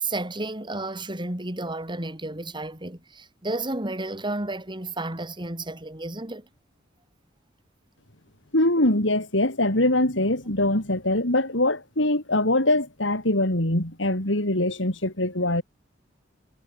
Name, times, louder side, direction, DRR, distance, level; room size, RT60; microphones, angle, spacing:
voice 1, 0.0-6.5, right 2 dB, 25° right, 4.2 m, -32 dB
voice 2, 8.5-15.6, left 1 dB, 70° left, 5.8 m, -23 dB
head